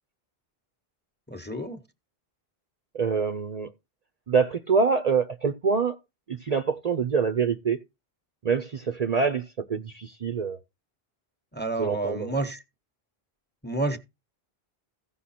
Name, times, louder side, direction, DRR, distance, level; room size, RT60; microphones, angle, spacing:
voice 1, 1.3-1.8 11.5-12.6 13.6-14.0, right 2 dB, 10° left, 1.1 m, -29 dB
voice 2, 2.9-3.7 4.3-6.0 6.3-7.8 8.4-10.6 11.8-12.3, right 5 dB, 45° right, 0.7 m, -25 dB
15.5 x 5.6 x 4.3 m
omnidirectional pair, 1.0 m